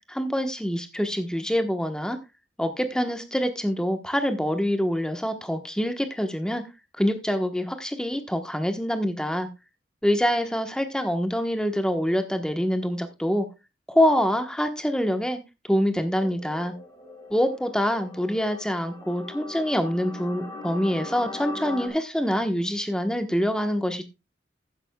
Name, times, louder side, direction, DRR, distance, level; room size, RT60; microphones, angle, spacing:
voice 1, 0.1-2.2 2.6-6.6 7.0-9.5 10.0-13.5 13.9-15.4 15.6-16.7 17.3-24.0, equal, 5° left, 7 dB, 1.2 m, -25 dB
sound 1, 16.2-21.9, left 3 dB, 20° left, 2.9 m, -40 dB
14.0 x 10.5 x 2.3 m, 0.25 s
head